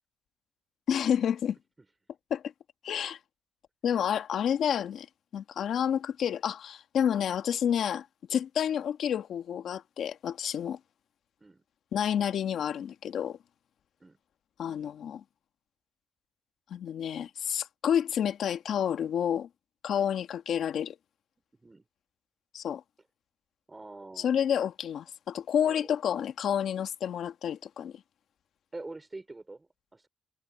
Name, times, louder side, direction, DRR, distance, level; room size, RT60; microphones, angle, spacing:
voice 1, 0.9-1.6 2.3-2.4 2.8-3.2 3.8-5.1 5.3-10.8 11.9-13.4 14.6-15.2 16.7-19.5 19.8-20.9 22.5-22.8 24.2-27.9, left 9 dB, 65° left, 1.6 m, -29 dB
voice 2, 23.7-24.3 25.6-25.9 28.7-30.1, right 2 dB, 20° right, 3.4 m, -45 dB
cardioid pair, 90°, 0 cm